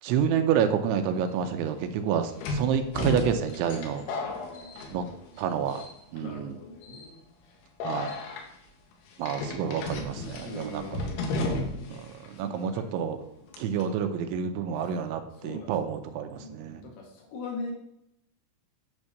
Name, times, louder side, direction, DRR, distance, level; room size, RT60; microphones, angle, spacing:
voice 1, 0.0-4.0 4.9-5.0 5.4-5.9 6.1-6.6 7.8-8.1 9.2-11.0 11.9-13.2 13.6-16.8, right 8 dB, 85° right, 7 dB, 3.2 m, -28 dB
sound 1, 1.1-1.2 2.4-5.4 5.7-6.2 6.8-7.1 7.8-8.4 9.2-12.0 12.2-12.3 13.5-13.8, left 2 dB, 85° left, 3.7 m, -33 dB
voice 2, 4.2-5.3 6.2-7.6 10.4-12.0 12.4-12.9 13.4-13.8 15.4-16.0 16.4-17.7, left 2 dB, 60° left, 1 dB, 2.8 m, -42 dB
9.6 x 3.6 x 6.6 m, 0.80 s
omnidirectional pair, 5.3 m